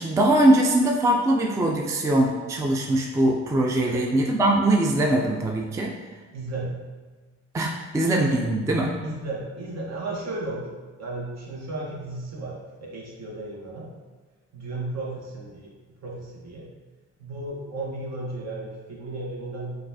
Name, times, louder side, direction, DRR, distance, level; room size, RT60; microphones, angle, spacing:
voice 1, 0.0-5.9 7.5-8.9, right 1 dB, 10° right, 0 dB, 0.3 m, -22 dB
voice 2, 6.3-6.7 9.0-10.7 11.0-13.9 14.5-15.7 16.0-16.7 17.2-19.8, right 2 dB, 60° right, -3 dB, 1.0 m, -34 dB
3.9 x 2.4 x 2.7 m, 1.3 s
cardioid pair, 90°, 30 cm